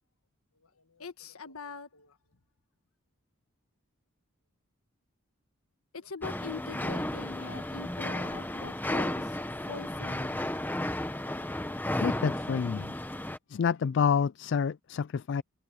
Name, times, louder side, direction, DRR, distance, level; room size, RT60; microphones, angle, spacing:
voice 1, 0.8-2.2 5.9-9.4 9.7-10.4, left 4 dB, 80° left, 1.5 m, -43 dB
sound 1, 6.2-13.4, left 1 dB, 10° left, 1.1 m, -33 dB
voice 2, 12.0-12.9 13.5-15.4, left 6 dB, 55° left, 0.3 m, -28 dB
head